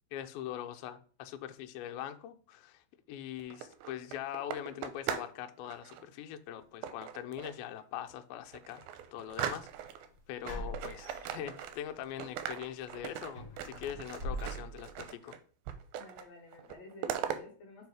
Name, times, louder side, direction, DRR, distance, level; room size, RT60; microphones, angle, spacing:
voice 1, 0.1-9.9 10.3-15.4, left 11 dB, 85° left, 2.4 m, -42 dB
sound 1, 3.4-5.4 5.6-6.0 6.8-7.7 8.1-8.2 8.5-10.1 10.5-12.0 12.2-15.4 15.7-16.3 16.5-17.4, right 10 dB, 85° right, 2.6 m, -40 dB
sound 2, 10.4-11.9 12.3-12.5 12.9-15.0, equal, 25° right, 3.3 m, -42 dB
voice 2, 16.0-17.9, left 3 dB, 60° left, 2.0 m, -52 dB
5.5 x 4.9 x 4.7 m
omnidirectional pair, 4.3 m